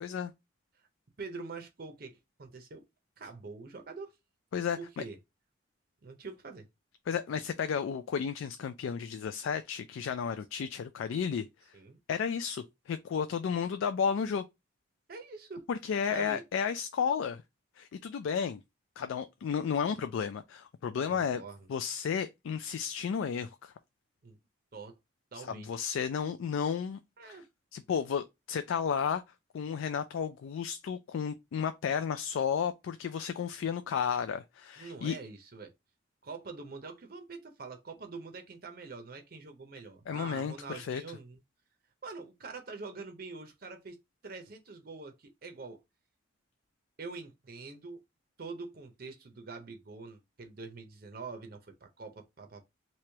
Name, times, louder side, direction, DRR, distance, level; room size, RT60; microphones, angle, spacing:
voice 1, 0.0-0.3 4.5-5.0 7.1-11.5 12.1-14.4 15.7-17.4 17.8-18.6 19.0-21.4 21.7-23.7 25.3-27.4 27.7-29.2 29.5-35.2 40.1-41.0, left 7 dB, 80° left, 0.3 m, -33 dB
voice 2, 1.2-2.8 3.2-4.1 4.7-5.2 6.0-6.6 11.7-12.0 15.1-15.6 16.1-16.4 21.1-21.7 24.2-24.3 24.7-24.9 25.3-25.9 27.2-27.4 34.8-35.7 36.2-41.4 42.0-44.0 44.2-45.8 47.0-48.0 48.4-52.6, right 4 dB, 50° right, 0.6 m, -45 dB
3.1 x 2.9 x 3.2 m
head